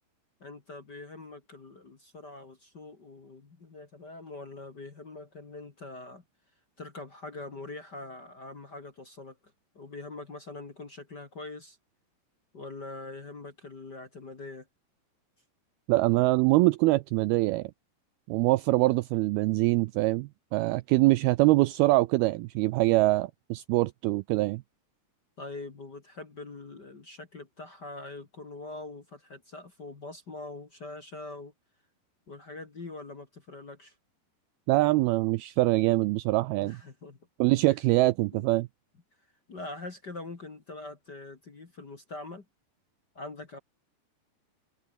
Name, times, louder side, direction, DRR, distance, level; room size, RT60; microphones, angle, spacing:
voice 1, 0.4-6.2 6.8-9.4 9.7-11.8 12.5-14.7 25.4-31.5 32.3-33.9 36.6-37.2 37.7-37.8 38.3-38.4 39.5-42.4 43.1-43.6, left 2 dB, 35° left, 2.0 m, -43 dB
voice 2, 15.9-17.7 18.3-24.6 34.7-36.8 37.4-38.7, right 20 dB, 85° right, 2.2 m, -24 dB
omnidirectional pair, 5.0 m